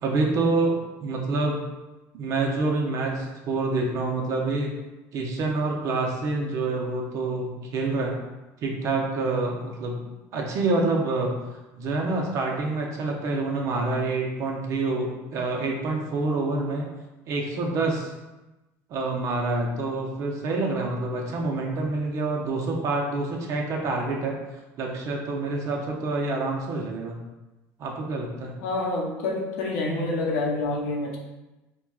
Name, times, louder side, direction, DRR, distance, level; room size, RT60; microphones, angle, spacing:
voice 1, 0.0-1.6 2.2-4.7 5.1-8.2 8.6-10.0 10.3-11.3 11.7-16.9 17.3-18.1 18.9-24.4 24.8-27.2 27.8-28.5, right 3 dB, 50° right, 0 dB, 0.7 m, -27 dB
voice 2, 28.6-31.2, left 2 dB, 90° left, -1 dB, 0.7 m, -27 dB
4.3 x 2.3 x 2.3 m, 1.1 s
cardioid pair, 125°, 7 cm